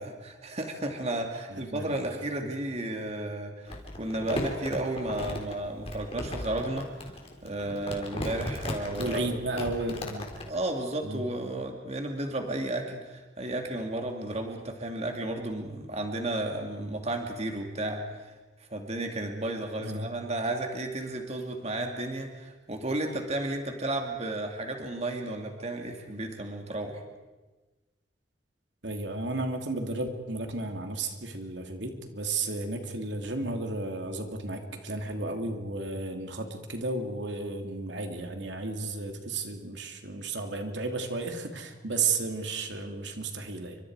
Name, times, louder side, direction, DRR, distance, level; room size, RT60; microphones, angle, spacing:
voice 1, 0.0-7.1 7.4-9.3 10.5-18.3 18.7-27.0, right 1 dB, 35° right, 3 dB, 2.5 m, -33 dB
voice 2, 1.5-2.0 9.0-10.3 11.0-11.2 19.8-20.1 28.8-43.8, right 3 dB, 75° right, 4 dB, 2.8 m, -33 dB
Crumpling crinkling, 3.7-10.5, left 1 dB, 35° left, 4.1 m, -36 dB
29.5 x 25.5 x 4.9 m, 1.2 s
head